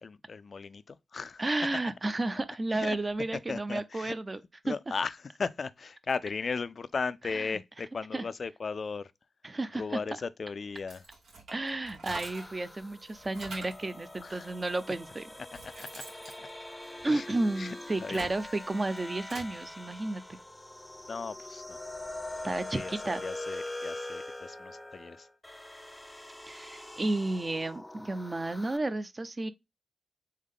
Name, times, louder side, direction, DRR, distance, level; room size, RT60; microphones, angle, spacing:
voice 1, 0.0-1.4 2.7-3.0 3.5-4.1 4.6-5.1 5.4-9.1 9.7-11.0 14.2-14.5 15.6-16.0 16.4-16.5 17.0-17.3 17.6-17.7 18.0-18.3 21.1-21.8 22.7-22.9 23.2-25.3, left 4 dB, 55° left, 0.3 m, -36 dB
voice 2, 1.4-4.4 4.7-4.8 7.2-7.6 8.1-8.2 9.4-10.0 11.5-15.3 17.0-20.4 22.4-23.2 26.5-29.5, right 2 dB, 35° right, 0.5 m, -32 dB
sound 1, 10.7-12.6 13.0-13.9 14.7-14.8 15.2-17.4 17.9-19.5, right 3 dB, 90° right, 1.7 m, -46 dB
sound 2, 12.2-28.8, left 1 dB, 15° left, 0.6 m, -43 dB
3.7 x 3.2 x 3.5 m
cardioid pair, 55°, 0 cm